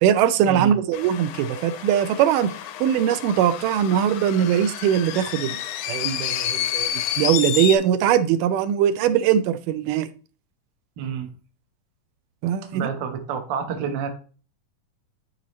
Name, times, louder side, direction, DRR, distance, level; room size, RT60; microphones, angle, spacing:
voice 1, 0.0-2.5 2.8-5.6 5.9-6.9 7.2-10.1 12.4-12.9, right 9 dB, 80° right, 2.2 m, -21 dB
sound 1, 0.9-7.8, left 11 dB, 75° left, 2.0 m, -30 dB
voice 2, 11.0-11.3 12.6-14.1, right 7 dB, 65° right, 1.1 m, -29 dB
12.0 x 4.1 x 3.1 m
omnidirectional pair, 3.8 m